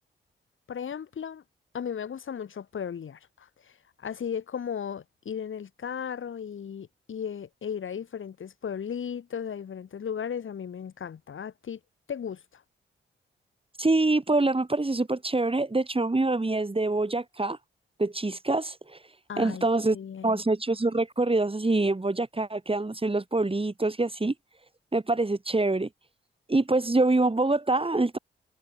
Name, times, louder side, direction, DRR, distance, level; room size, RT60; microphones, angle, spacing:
voice 1, 0.7-1.4 1.7-3.5 4.0-11.8 12.1-12.6 19.3-19.7 19.9-20.4, left 7 dB, 70° left, 7.2 m, -35 dB
voice 2, 13.8-17.6 18.0-18.8 19.4-20.0 20.2-24.3 24.9-25.9 26.5-28.2, right 2 dB, 25° right, 3.6 m, -25 dB
supercardioid pair, 45°, 21 cm